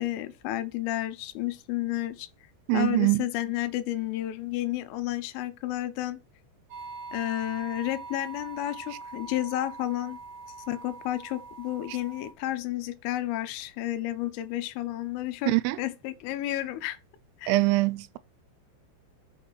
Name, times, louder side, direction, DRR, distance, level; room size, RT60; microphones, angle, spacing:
voice 1, 0.0-2.3 2.7-6.2 7.1-10.2 10.7-17.0 17.4-17.5, left 14 dB, 80° left, 3.1 m, -31 dB
voice 2, 2.7-3.3 15.5-15.8 17.5-18.2, right 20 dB, 85° right, 3.3 m, -23 dB
sound 1, 6.7-12.3, right 4 dB, 55° right, 2.6 m, -43 dB
7.3 x 5.8 x 6.2 m
omnidirectional pair, 5.9 m